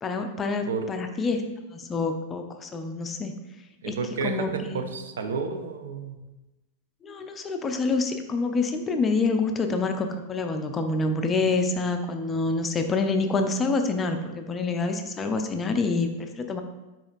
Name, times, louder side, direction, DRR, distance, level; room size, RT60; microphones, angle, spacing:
voice 1, 0.0-1.4 1.7-3.3 3.9-4.0 4.2-4.8 7.0-16.6, left 3 dB, 20° left, 6 dB, 0.4 m, -27 dB
voice 2, 3.8-6.2, right 4 dB, 65° right, 7 dB, 0.5 m, -31 dB
4.9 x 4.1 x 2.4 m, 1.0 s
figure-of-eight pair, 90°, 0 cm